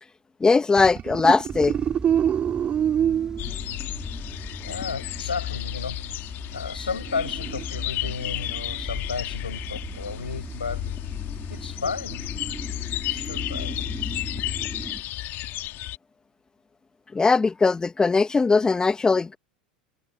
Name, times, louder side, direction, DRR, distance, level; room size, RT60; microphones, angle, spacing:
voice 1, 0.4-1.8 17.1-19.4, left 4 dB, 15° left, 2.2 m, -20 dB
sound 1, 0.8-3.5 6.9-7.6, right 9 dB, 30° right, 2.5 m, -25 dB
sound 2, 1.5-15.0, right 3 dB, 15° right, 5.6 m, -39 dB
sound 3, 3.4-16.0, left 16 dB, 45° left, 2.9 m, -33 dB
voice 2, 4.6-6.0 6.5-10.9 11.5-12.3 13.1-13.9, left 5 dB, 85° left, 6.7 m, -33 dB
figure-of-eight pair, 80°, 5 cm